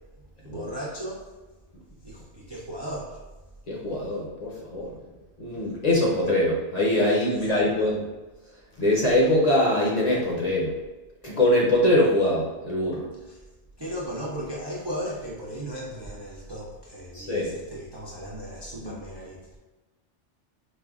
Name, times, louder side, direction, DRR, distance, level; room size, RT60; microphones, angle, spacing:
voice 1, 0.4-1.3 2.0-3.2 7.3-7.9 13.3-13.4 13.8-19.4, equal, 45° right, -5 dB, 0.3 m, -36 dB
voice 2, 3.7-4.9 5.4-8.0 8.8-10.7 11.2-13.1 17.1-17.5 18.8-18.9, left 1 dB, 45° left, -4 dB, 0.6 m, -23 dB
5.1 x 2.1 x 2.3 m, 1.2 s
omnidirectional pair, 1.2 m